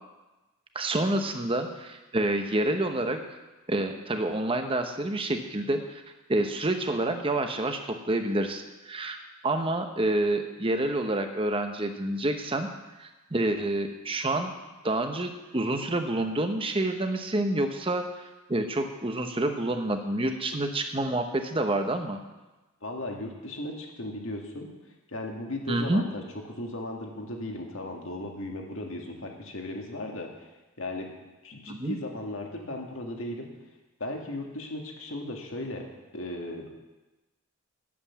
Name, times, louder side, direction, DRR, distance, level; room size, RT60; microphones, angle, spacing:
voice 1, 0.7-3.2 3.7-6.0 6.3-12.7 13.0-14.5 14.8-18.1 18.5-22.2 25.7-26.0 31.7-32.0, right 1 dB, 25° right, 6 dB, 0.9 m, -28 dB
voice 2, 22.8-24.7 25.1-26.2 26.5-30.5 30.8-31.1 31.4-33.5 34.0-35.9 36.1-36.7, left 1 dB, 65° left, 1 dB, 1.9 m, -36 dB
9.5 x 8.6 x 7.1 m, 1.1 s
head